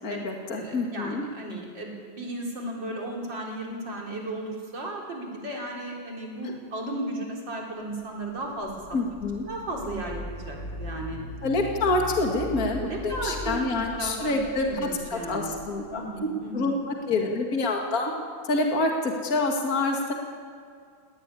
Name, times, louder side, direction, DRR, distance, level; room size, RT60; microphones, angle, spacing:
voice 1, 0.0-1.2 6.4-6.5 8.9-9.5 11.4-16.1 16.5-18.1 18.5-20.1, left 2 dB, 45° left, 1 dB, 2.5 m, -27 dB
voice 2, 0.5-8.8 9.5-11.2 12.8-15.6 15.9-16.7, right 1 dB, 60° right, -1 dB, 4.8 m, -35 dB
sound 1, 8.0-16.0, left 1 dB, 25° left, 4.4 m, -39 dB
18.5 x 17.5 x 9.9 m, 2.1 s
omnidirectional pair, 2.2 m